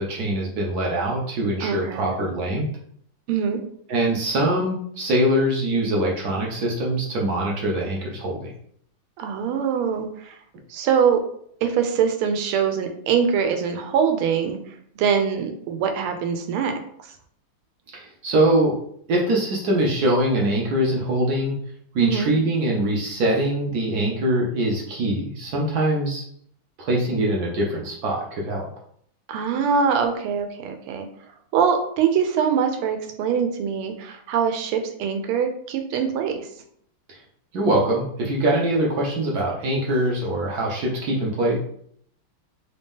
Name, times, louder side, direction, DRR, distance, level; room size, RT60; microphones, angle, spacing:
voice 1, 0.0-2.6 3.9-8.5 17.9-18.8 19.1-21.6 21.9-26.2 26.8-28.7 37.1-37.2 37.5-41.6, right 1 dB, 65° right, -2 dB, 1.0 m, -23 dB
voice 2, 1.6-2.1 3.3-3.6 9.2-10.4 10.7-11.2 11.6-14.6 15.0-16.7 17.0-17.1 22.0-22.3 29.3-31.1 31.5-36.5, right 7 dB, 85° right, 6 dB, 1.5 m, -23 dB
3.5 x 2.8 x 3.5 m, 0.66 s
omnidirectional pair, 2.3 m